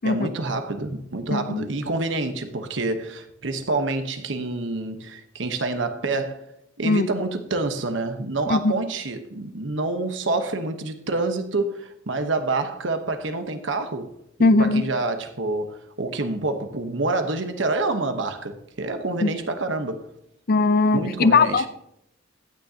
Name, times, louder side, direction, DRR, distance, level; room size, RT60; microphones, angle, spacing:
voice 1, 0.0-6.4 6.8-14.1 14.4-20.0 20.9-21.6, right 2 dB, 70° right, 1.1 m, -27 dB
voice 2, 1.3-1.7 6.8-7.1 8.5-8.7 14.4-14.8 19.2-19.3 20.5-21.7, left 3 dB, 50° left, 0.5 m, -19 dB
15.0 x 9.4 x 2.9 m
head